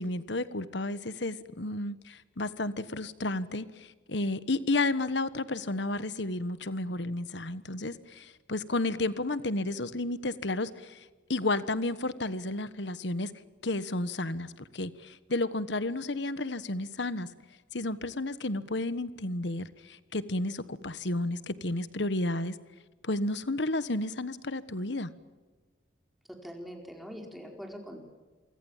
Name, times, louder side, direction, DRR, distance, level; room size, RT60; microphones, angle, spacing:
voice 1, 0.0-11.0 11.3-13.3 13.6-17.3 17.7-22.6 23.0-25.1, left 2 dB, 70° left, 14 dB, 1.3 m, -32 dB
voice 2, 26.3-28.0, equal, ahead, 2 dB, 4.6 m, -43 dB
27.5 x 24.0 x 7.4 m, 1.3 s
head